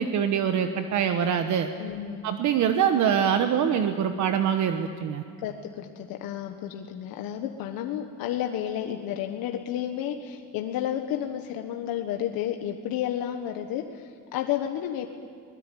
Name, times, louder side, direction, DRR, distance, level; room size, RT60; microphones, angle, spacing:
voice 1, 0.0-1.7 2.2-5.2, right 8 dB, 55° right, 7 dB, 1.2 m, -24 dB
voice 2, 1.8-2.2 5.4-15.1, left 10 dB, 90° left, 4 dB, 1.5 m, -31 dB
21.5 x 20.5 x 9.4 m, 2.4 s
cardioid pair, 155°, 34 cm